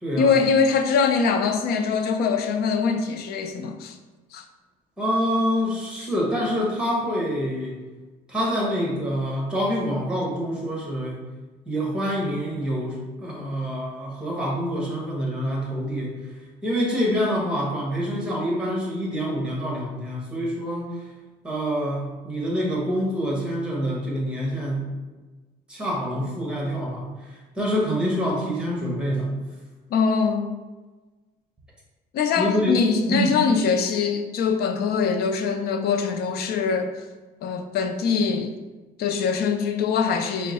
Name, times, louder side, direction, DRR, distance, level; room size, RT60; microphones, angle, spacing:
voice 1, 0.2-3.9 4.3-4.4 29.9-30.6 32.1-36.9 37.4-38.5 39.0-40.5, left 5 dB, 70° left, 6 dB, 0.5 m, -23 dB
voice 2, 5.0-7.7 8.3-11.2 11.6-16.1 16.6-20.9 21.4-24.8 25.7-29.3 32.4-32.7 33.1-33.3, equal, 5° right, -4 dB, 1.4 m, -26 dB
4.4 x 2.2 x 4.1 m, 1.2 s
cardioid pair, 110°, 17 cm